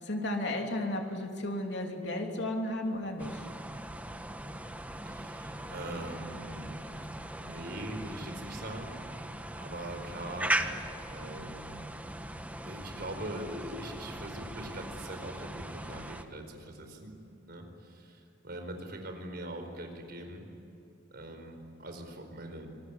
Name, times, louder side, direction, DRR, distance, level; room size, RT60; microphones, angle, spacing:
voice 1, 0.0-3.5, left 1 dB, 65° left, 2 dB, 3.1 m, -33 dB
sound 1, 3.2-16.2, right 1 dB, 10° right, 1.2 m, -39 dB
voice 2, 5.0-6.7 7.3-9.2 9.6-10.6 11.1-11.8 12.6-17.1 17.5-20.5 21.1-22.7, right 1 dB, 55° right, 5 dB, 4.7 m, -42 dB
26.5 x 20.5 x 9.9 m, 2.8 s
head